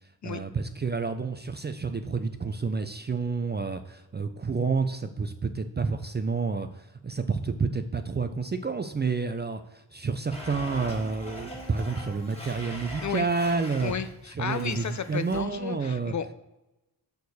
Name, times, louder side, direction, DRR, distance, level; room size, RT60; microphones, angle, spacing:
voice 1, 0.2-13.9 14.4-16.1, right 4 dB, 25° right, 8 dB, 0.3 m, -29 dB
Domestic sounds home sounds, 10.3-14.1 14.5-15.4, equal, 15° left, 1.8 m, -41 dB
voice 2, 13.8-16.3, left 7 dB, 45° left, 11 dB, 0.4 m, -33 dB
6.5 x 4.5 x 4.1 m, 0.99 s
wide cardioid pair, 90°, 44 cm